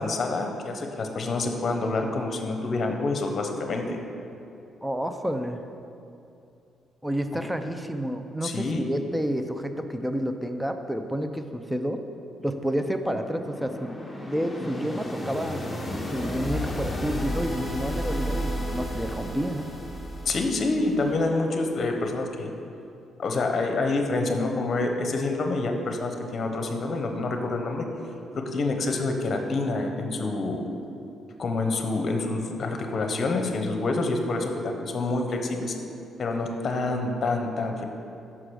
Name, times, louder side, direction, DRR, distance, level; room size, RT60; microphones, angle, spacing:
voice 1, 0.0-4.0 7.3-7.4 8.4-8.8 20.2-22.5 23.2-27.9 28.3-30.6 31.4-35.7 36.2-37.8, left 3 dB, 45° left, 4 dB, 0.9 m, -27 dB
voice 2, 4.8-5.6 7.0-12.0 12.4-14.0 14.3-15.6 16.1-19.7, equal, 5° right, 7 dB, 0.4 m, -29 dB
sound 1, 12.4-21.3, equal, 15° left, 1.0 m, -33 dB
6.0 x 4.8 x 6.2 m, 2.6 s
cardioid pair, 90°, 0 cm